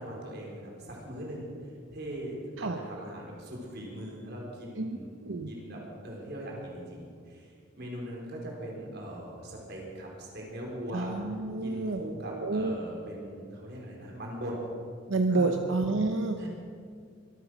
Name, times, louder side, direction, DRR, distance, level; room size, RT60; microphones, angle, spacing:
voice 1, 0.0-1.5 1.9-5.1 5.5-11.1 11.6-14.6 15.3-15.6 16.4-16.5, right 1 dB, 60° right, -2 dB, 4.3 m, -40 dB
voice 2, 10.9-12.7 15.1-16.4, right 3 dB, 90° right, 6 dB, 0.8 m, -29 dB
24.0 x 9.1 x 6.3 m, 2.2 s
head